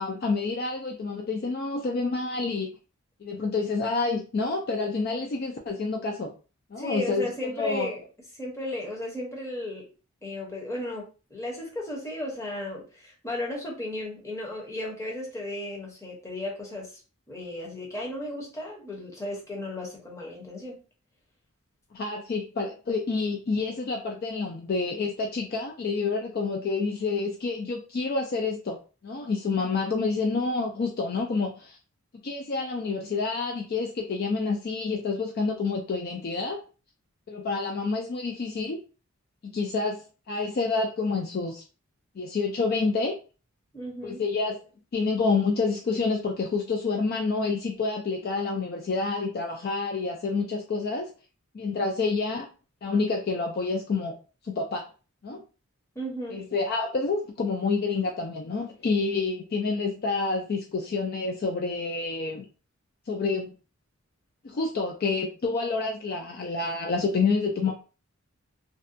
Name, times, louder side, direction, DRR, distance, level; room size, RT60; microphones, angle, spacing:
voice 1, 0.0-2.7 3.2-6.3 6.7-7.9 21.9-28.8 29.0-31.8 32.2-36.6 37.3-38.8 39.4-41.6 42.2-43.2 44.0-44.6 44.9-51.1 51.5-52.5 52.8-54.2 54.4-54.8 55.2-55.4 56.3-62.5 63.1-63.5 64.4-67.7, left 4 dB, 45° left, 1 dB, 0.3 m, -28 dB
voice 2, 6.8-8.0 8.3-9.8 10.2-17.0 17.3-20.8 43.7-44.2 55.9-56.4, left 1 dB, 15° left, -2 dB, 0.7 m, -35 dB
2.6 x 2.1 x 2.5 m, 0.34 s
head